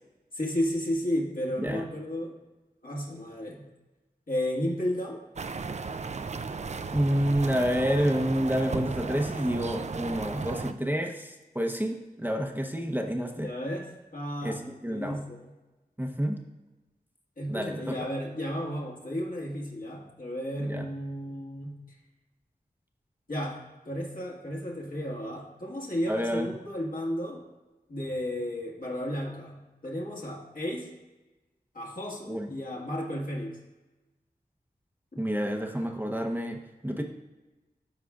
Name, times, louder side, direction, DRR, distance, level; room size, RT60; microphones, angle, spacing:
voice 1, 0.3-2.4 2.8-3.7 4.3-5.2 13.4-15.5 17.4-21.8 23.3-23.6 23.8-27.4 27.9-30.9 31.7-33.6 35.1-35.2, equal, 60° left, -2 dB, 1.7 m, -33 dB
sound 1, 5.4-10.7, right 4 dB, 45° right, 0.4 m, -35 dB
voice 2, 6.9-13.5 14.4-15.2 16.0-16.4 17.5-18.1 20.6-20.9 26.1-26.5 32.3-32.5 35.2-37.0, equal, 10° right, 2 dB, 0.8 m, -29 dB
12.5 x 4.8 x 2.4 m, 1.1 s
cardioid pair, 40°, 16 cm